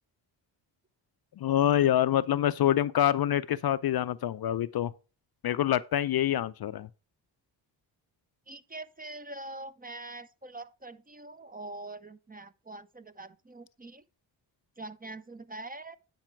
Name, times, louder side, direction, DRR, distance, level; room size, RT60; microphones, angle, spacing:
voice 1, 1.4-4.9 5.4-6.9, left 11 dB, 50° left, 0.5 m, -26 dB
voice 2, 8.5-14.0 14.8-16.0, right 2 dB, 20° right, 0.6 m, -44 dB
9.0 x 5.4 x 4.5 m
cardioid pair, 60°, 47 cm